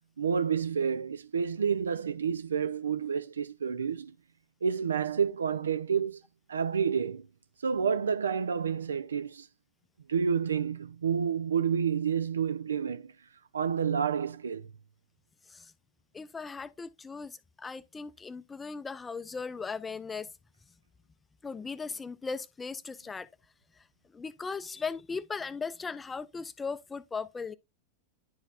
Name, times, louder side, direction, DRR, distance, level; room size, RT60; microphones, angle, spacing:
voice 1, 0.2-4.1 4.6-6.2 6.5-7.3 7.6-9.5 10.1-13.1 13.5-14.6, right 7 dB, 70° right, 0.5 m, -29 dB
voice 2, 16.1-20.3 21.4-23.3 24.1-27.5, left 5 dB, 15° left, 0.5 m, -38 dB
11.0 x 4.0 x 2.4 m
figure-of-eight pair, 90°, 0 cm